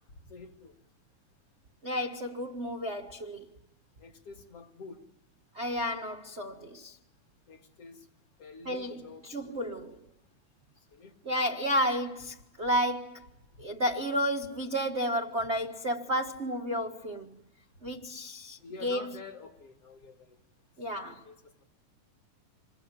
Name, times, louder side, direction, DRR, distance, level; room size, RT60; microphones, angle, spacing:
voice 1, 0.3-0.7 4.0-5.1 7.5-8.1 8.4-9.7 10.9-11.1 18.6-20.4 21.1-21.6, left 3 dB, 55° left, 2.9 m, -48 dB
voice 2, 1.8-3.4 5.5-7.0 8.6-9.9 11.2-13.3 13.6-17.4 17.8-19.1 20.8-21.2, equal, 35° right, 1.0 m, -32 dB
26.5 x 21.5 x 9.7 m
omnidirectional pair, 3.4 m